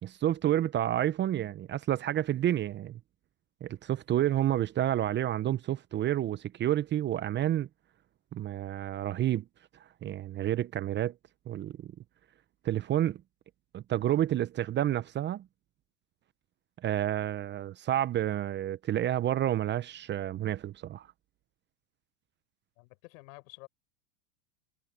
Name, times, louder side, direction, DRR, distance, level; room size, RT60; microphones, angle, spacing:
voice 1, 0.0-3.0 3.6-7.7 8.3-9.4 10.0-11.1 11.5-11.9 12.6-13.2 13.7-15.5 16.8-21.1, right 12 dB, 25° right, 0.8 m, -29 dB
voice 2, 22.8-23.7, left 25 dB, 60° left, 7.2 m, -50 dB
hypercardioid pair, 110°, 46 cm